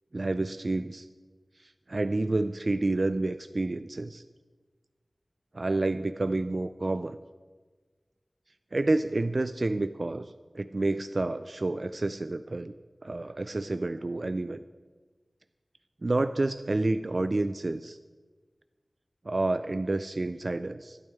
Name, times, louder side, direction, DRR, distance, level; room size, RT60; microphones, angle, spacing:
voice 1, 0.1-1.1 1.6-4.2 5.5-7.2 8.7-12.7 13.0-14.6 16.0-18.0 19.3-21.0, right 2 dB, 55° right, 11 dB, 0.3 m, -29 dB
12.0 x 11.5 x 3.5 m, 1.4 s
wide cardioid pair, 70°, 0 cm